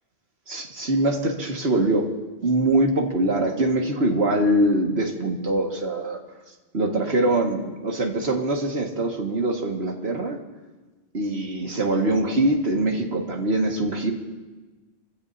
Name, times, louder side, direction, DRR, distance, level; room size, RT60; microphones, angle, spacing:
voice 1, 0.5-2.1 2.4-6.2 6.7-10.4 11.1-14.1, right 1 dB, 80° right, 1 dB, 2.2 m, -23 dB
26.5 x 15.5 x 2.8 m, 1.2 s
omnidirectional pair, 1.1 m